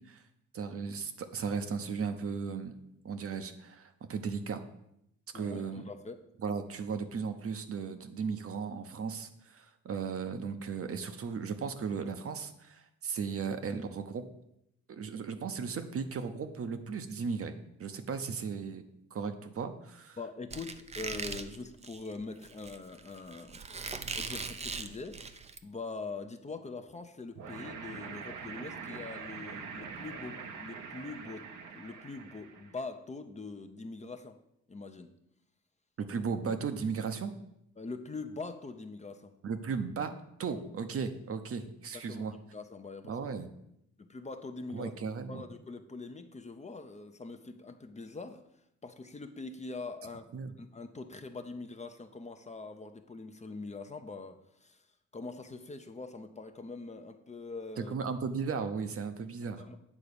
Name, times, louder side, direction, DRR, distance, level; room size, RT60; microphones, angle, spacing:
voice 1, 0.5-2.7 3.0-4.6 5.3-5.8 6.4-14.2 14.9-18.9 19.1-20.2 36.0-37.3 39.4-40.1 40.4-42.3 43.1-43.5 44.7-45.4 50.3-50.5 57.8-59.6, right 5 dB, 50° right, 8 dB, 0.8 m, -36 dB
voice 2, 5.3-6.2 20.2-23.6 24.1-31.4 31.7-34.4 34.7-35.1 37.8-39.3 41.9-43.1 44.0-48.4 48.8-50.3 50.6-54.8 55.1-57.9 59.6-59.8, left 3 dB, 25° left, 7 dB, 0.7 m, -43 dB
Squeak, 20.5-25.6, right 4 dB, 20° right, 0.5 m, -40 dB
sound 1, 27.4-32.8, right 6 dB, 80° right, 1.0 m, -44 dB
8.5 x 3.8 x 6.8 m, 0.78 s
cardioid pair, 90°, 30 cm